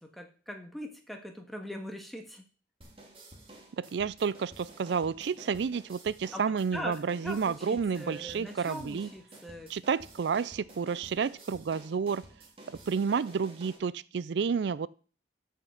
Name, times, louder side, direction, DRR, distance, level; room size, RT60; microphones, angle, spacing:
voice 1, 0.0-2.4 6.3-9.7, equal, ahead, 3 dB, 1.6 m, -42 dB
sound 1, 2.8-13.8, right 1 dB, 30° right, 2.4 m, -52 dB
voice 2, 3.8-9.1 9.7-12.2 12.9-14.9, right 6 dB, 80° right, 20 dB, 0.4 m, -30 dB
13.0 x 5.7 x 5.7 m, 0.40 s
head